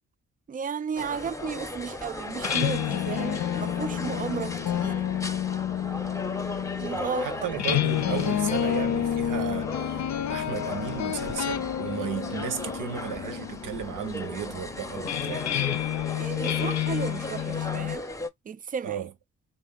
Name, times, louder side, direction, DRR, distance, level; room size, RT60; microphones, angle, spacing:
voice 1, 0.5-5.0 6.8-7.6 16.2-18.1 18.5-19.1, right 6 dB, 25° right, 0.4 m, -34 dB
sound 1, 0.9-18.3, left 1 dB, 10° left, 0.7 m, -37 dB
sound 2, 2.3-18.0, left 11 dB, 60° left, 0.6 m, -30 dB
voice 2, 6.9-15.4 18.8-19.1, right 9 dB, 75° right, 0.9 m, -34 dB
3.5 x 2.5 x 3.8 m
supercardioid pair, 50°, 31 cm